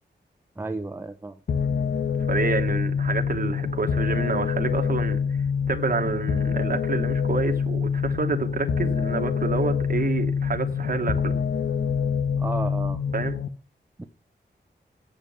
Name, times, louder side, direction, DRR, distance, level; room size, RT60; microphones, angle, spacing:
voice 1, 0.6-1.4 12.4-13.0 14.0-14.1, right 2 dB, 10° right, 0.7 m, -32 dB
sound 1, 1.5-13.5, left 6 dB, 70° left, 0.9 m, -26 dB
voice 2, 2.3-5.2 5.7-11.4 13.1-13.4, right 4 dB, 50° right, 1.2 m, -28 dB
7.9 x 7.3 x 8.3 m
wide cardioid pair, 135°, 18 cm